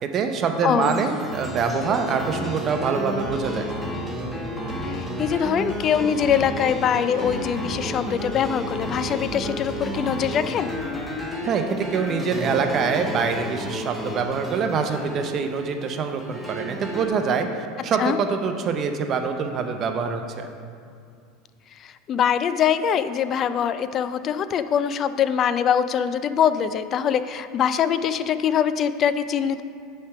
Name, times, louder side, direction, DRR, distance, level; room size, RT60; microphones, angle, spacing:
voice 1, 0.0-3.7 11.5-20.5, right 5 dB, 40° right, 6 dB, 0.6 m, -25 dB
voice 2, 0.6-1.0 4.9-10.7 18.0-18.2 21.8-29.6, left 8 dB, 40° left, 12 dB, 0.3 m, -23 dB
sound 1, 0.8-17.1, equal, 5° left, 1.0 m, -32 dB
sound 2, 3.2-3.4 3.7-3.9 4.2-4.4 4.7-6.4 6.7-6.8 7.2-7.4 7.7-7.9 8.2-8.4 8.7-10.2 10.7-11.1, right 3 dB, 90° right, 1.6 m, -41 dB
8.6 x 3.4 x 5.8 m, 2.3 s
supercardioid pair, 125°, 0 cm